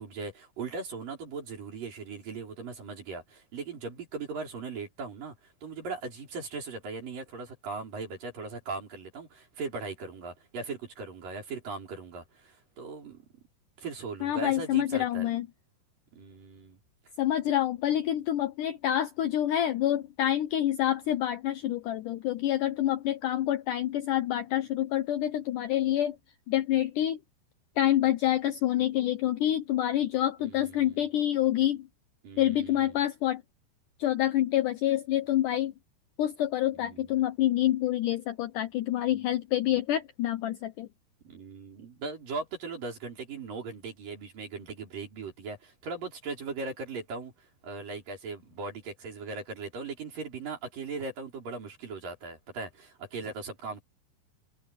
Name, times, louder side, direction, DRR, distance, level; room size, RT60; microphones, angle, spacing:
voice 1, 0.0-5.3 5.6-13.2 13.8-15.3 16.1-16.8 30.4-31.1 32.2-33.0 36.8-37.1 41.2-53.8, right 4 dB, 55° right, 6.7 m, -39 dB
voice 2, 14.2-15.5 17.2-26.2 26.5-27.2 27.8-31.9 32.4-33.4 34.0-35.7 36.2-40.9, left 12 dB, 90° left, 1.8 m, -27 dB
omnidirectional pair, 4.8 m